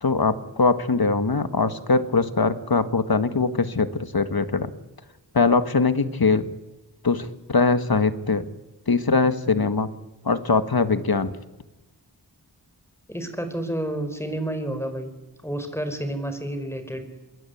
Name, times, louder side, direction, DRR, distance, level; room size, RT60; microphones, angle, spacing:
voice 1, 0.0-4.7 5.3-6.5 7.0-8.5 8.9-9.9 10.3-11.4, left 4 dB, 60° left, 11 dB, 1.7 m, -22 dB
voice 2, 13.1-15.1 15.4-17.0, right 1 dB, 5° left, 7 dB, 5.2 m, -30 dB
27.0 x 22.5 x 8.6 m, 1.1 s
wide cardioid pair, 60°, 42 cm